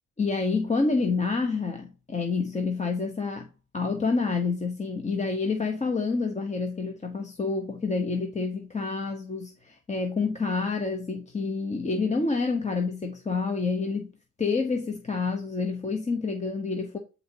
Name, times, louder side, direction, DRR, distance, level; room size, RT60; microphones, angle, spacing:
voice 1, 0.2-3.5 3.7-14.1 14.4-17.0, left 4 dB, 25° left, 0.9 m, -28 dB
9.3 x 4.1 x 2.8 m
cardioid pair, 90°, 30 cm